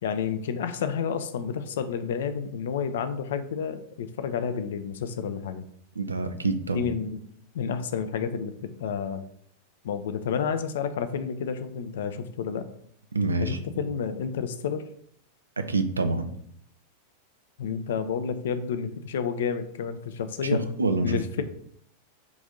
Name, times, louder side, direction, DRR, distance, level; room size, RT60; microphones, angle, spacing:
voice 1, 0.0-5.6 6.7-7.2 7.5-9.2 9.8-12.7 13.4-14.9 17.6-20.6 21.0-21.4, left 7 dB, 60° left, 11 dB, 0.3 m, -30 dB
voice 2, 6.0-6.9 13.1-13.6 15.6-16.3 20.5-21.2, right 3 dB, 75° right, 9 dB, 0.4 m, -26 dB
3.9 x 2.6 x 3.6 m, 0.66 s
figure-of-eight pair, 90°, 0 cm